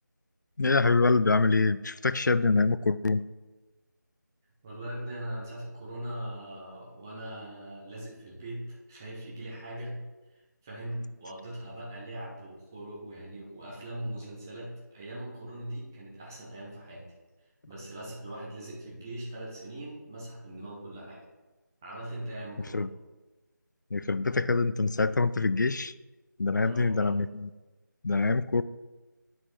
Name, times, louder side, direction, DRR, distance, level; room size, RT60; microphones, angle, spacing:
voice 1, 0.6-3.2 22.7-22.9 23.9-25.9 26.4-27.5 28.0-28.6, left 3 dB, 70° left, 15 dB, 0.4 m, -25 dB
voice 2, 4.6-10.0 10.3-17.1 17.7-21.2 21.8-22.9 26.6-27.1, right 1 dB, 10° right, -5 dB, 0.8 m, -40 dB
9.7 x 5.9 x 3.2 m, 1.2 s
figure-of-eight pair, 170°, 10 cm